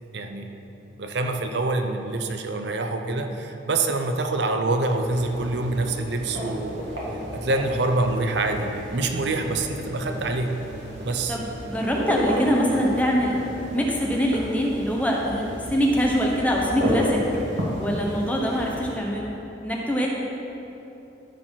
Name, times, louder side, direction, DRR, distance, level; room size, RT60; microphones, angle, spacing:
voice 1, 0.1-0.5 1.0-6.8 7.3-10.6 11.0-11.4, right 2 dB, 65° right, 5 dB, 0.7 m, -26 dB
voice 2, 3.1-3.4 11.3-13.4 13.7-17.2 17.8-20.1, equal, 10° left, -2 dB, 1.0 m, -24 dB
sound 1, 4.9-19.0, equal, 85° right, 2.4 m, -32 dB
13.5 x 4.8 x 5.8 m, 3.0 s
head